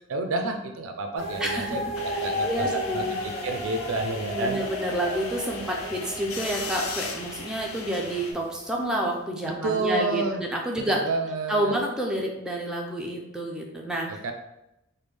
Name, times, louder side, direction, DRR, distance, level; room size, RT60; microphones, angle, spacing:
voice 1, 0.0-2.7 2.9-4.6 9.4-10.4 10.9-11.7 14.1-14.3, right 3 dB, 65° right, 5 dB, 0.4 m, -30 dB
sound 1, 1.2-9.0, equal, 30° left, 1.2 m, -34 dB
voice 2, 1.4-1.8 2.1-3.1 4.3-11.0 11.5-14.1, right 1 dB, 5° right, -1 dB, 0.4 m, -29 dB
sound 2, 1.9-8.3, left 4 dB, 80° left, 0.5 m, -39 dB
3.3 x 2.2 x 3.3 m, 0.87 s
head